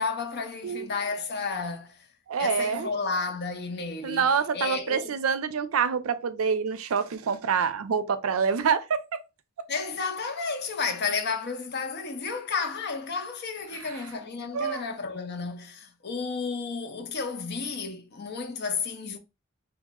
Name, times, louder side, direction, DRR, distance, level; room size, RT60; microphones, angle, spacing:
voice 1, 0.0-2.0 2.4-4.3 4.5-5.2 9.7-19.2, left 4 dB, 50° left, 0.5 m, -32 dB
voice 2, 2.3-2.9 4.0-9.2 13.7-14.0 14.5-14.8, right 6 dB, 75° right, 0.4 m, -26 dB
3.0 x 2.0 x 3.5 m
head